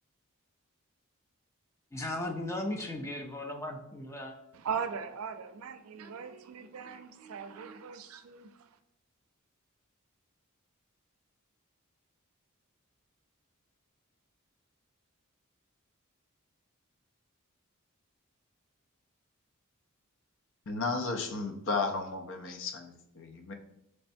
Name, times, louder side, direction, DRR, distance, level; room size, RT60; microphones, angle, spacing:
voice 1, 1.9-4.3, left 1 dB, 15° left, 2 dB, 0.5 m, -36 dB
voice 2, 4.5-8.5, right 6 dB, 80° right, 9 dB, 0.4 m, -39 dB
voice 3, 20.7-23.5, left 3 dB, 60° left, 4 dB, 0.5 m, -34 dB
4.1 x 3.3 x 2.6 m, 0.83 s
head